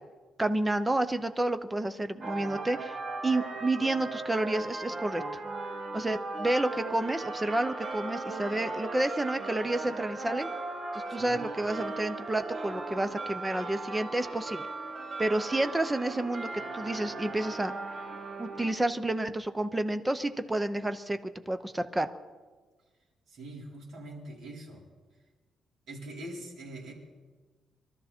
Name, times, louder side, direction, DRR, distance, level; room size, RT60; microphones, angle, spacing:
voice 1, 0.4-3.0 3.2-5.4 5.9-10.5 10.9-14.6 15.2-16.5 16.7-17.7 18.4-22.1, right 1 dB, 10° right, 9 dB, 0.6 m, -30 dB
sound 1, 2.2-18.7, right 3 dB, 35° right, 1.3 m, -37 dB
voice 2, 11.1-11.4 23.3-24.9 25.9-26.9, right 1 dB, 60° right, -4 dB, 4.5 m, -43 dB
23.0 x 13.0 x 4.3 m, 1.4 s
cardioid pair, 160°, 0 cm